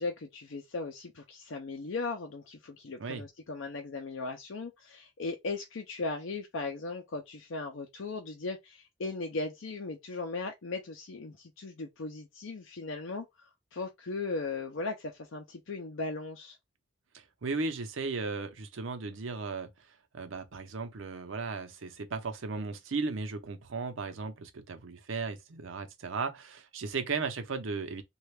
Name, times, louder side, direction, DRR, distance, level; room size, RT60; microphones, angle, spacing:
voice 1, 0.0-16.6, left 3 dB, 80° left, 0.6 m, -37 dB
voice 2, 17.1-19.9 20.1-28.0, right 4 dB, 85° right, 0.7 m, -36 dB
3.2 x 2.4 x 3.3 m
head